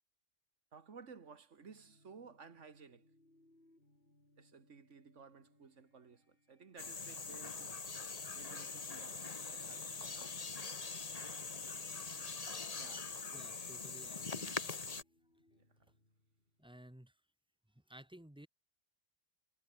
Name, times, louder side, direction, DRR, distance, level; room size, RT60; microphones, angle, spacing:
voice 1, 0.7-3.1 4.4-7.9 8.3-10.4 12.8-13.2, right 5 dB, 90° right, 2.1 m, -57 dB
sound 1, 1.6-16.7, left 1 dB, 50° left, 7.1 m, -72 dB
sound 2, 6.8-15.0, left 4 dB, 35° left, 1.2 m, -43 dB
voice 2, 13.3-14.7 16.6-17.1 17.7-18.5, right 1 dB, 5° right, 1.2 m, -56 dB
omnidirectional pair, 1.2 m